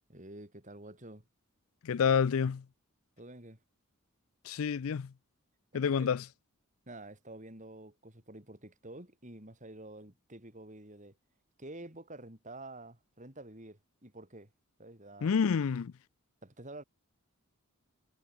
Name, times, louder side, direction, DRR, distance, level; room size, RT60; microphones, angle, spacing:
voice 1, 0.1-1.2 3.2-3.6 5.7-6.1 6.9-11.2 11.6-14.5 14.8-15.6 16.4-16.8, right 1 dB, 35° right, 4.8 m, -49 dB
voice 2, 1.8-2.6 4.4-5.1 5.7-6.2 15.2-15.9, left 6 dB, 75° left, 0.4 m, -28 dB
head